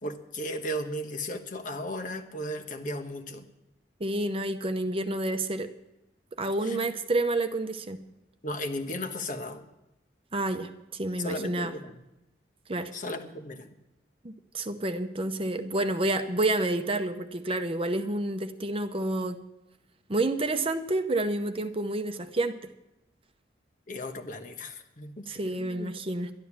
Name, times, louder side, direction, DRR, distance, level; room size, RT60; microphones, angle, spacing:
voice 1, 0.0-3.4 6.6-6.8 8.4-9.6 11.2-11.9 12.9-13.7 23.9-25.9, left 1 dB, 45° left, 7 dB, 1.2 m, -35 dB
voice 2, 4.0-5.7 6.4-8.0 10.3-11.7 12.7-12.9 14.2-19.4 20.1-22.6 25.3-26.3, right 2 dB, 30° right, 8 dB, 0.8 m, -29 dB
12.0 x 11.5 x 7.2 m, 0.93 s
head